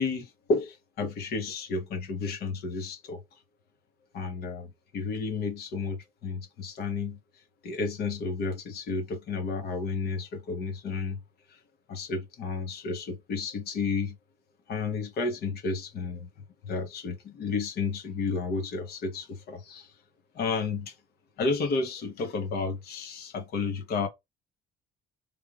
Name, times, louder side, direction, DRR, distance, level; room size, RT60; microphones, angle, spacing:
voice 1, 0.0-3.2 4.1-7.2 7.6-11.2 11.9-14.2 14.7-16.3 16.6-19.9 20.3-20.9 21.4-24.1, left 4 dB, 70° left, 1.2 m, -32 dB
3.5 x 3.2 x 2.4 m
cardioid pair, 110°, 17 cm